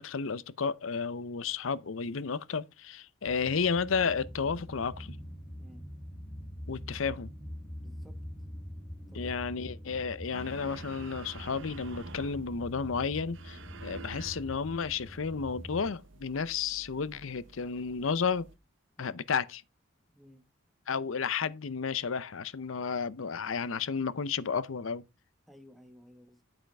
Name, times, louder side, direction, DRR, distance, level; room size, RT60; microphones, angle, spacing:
voice 1, 0.0-5.2 6.7-7.3 9.1-18.5 19.0-19.6 20.9-25.0, left 5 dB, 80° left, 0.6 m, -32 dB
sound 1, 3.3-15.9, equal, 30° left, 1.9 m, -44 dB
voice 2, 7.8-8.2 9.1-9.4 19.0-19.2 20.1-20.4 25.5-26.4, equal, ahead, 1.4 m, -56 dB
sound 2, 10.3-18.6, right 4 dB, 65° right, 0.8 m, -50 dB
8.8 x 7.9 x 3.4 m
head